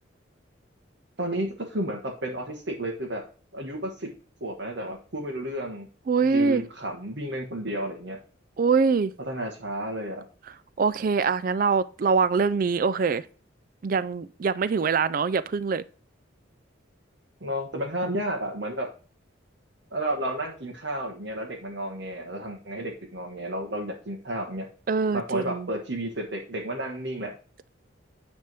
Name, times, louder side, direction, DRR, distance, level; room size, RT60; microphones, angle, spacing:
voice 1, 1.2-3.2 3.5-4.1 4.4-5.9 6.2-8.2 9.2-10.2 17.4-18.9 19.9-24.7 25.1-27.3, right 1 dB, 60° right, 1.3 m, -32 dB
voice 2, 6.1-6.6 8.6-9.1 10.8-13.3 13.8-15.8 24.9-25.7, right 5 dB, 45° right, 0.3 m, -23 dB
9.3 x 3.5 x 6.0 m
head